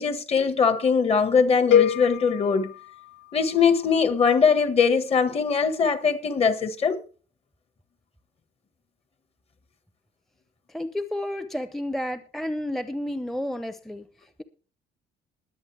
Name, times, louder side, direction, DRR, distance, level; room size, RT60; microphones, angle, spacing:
voice 1, 0.0-2.7 3.3-7.0, left 6 dB, 35° left, 1.6 m, -21 dB
sound 1, 1.7-3.8, left 9 dB, 80° left, 0.6 m, -25 dB
voice 2, 10.7-14.1, left 1 dB, ahead, 0.8 m, -31 dB
21.0 x 7.9 x 3.4 m
cardioid pair, 110°, 17 cm